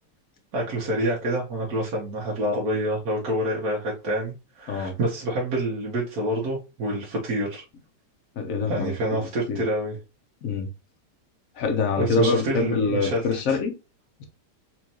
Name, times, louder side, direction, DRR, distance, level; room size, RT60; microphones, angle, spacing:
voice 1, 0.5-7.6 8.7-10.0 12.0-13.6, right 1 dB, 60° right, 1.5 m, -27 dB
voice 2, 8.4-9.6 10.4-10.7 11.5-13.7, left 4 dB, 60° left, 1.0 m, -25 dB
4.2 x 2.6 x 2.8 m
omnidirectional pair, 1.9 m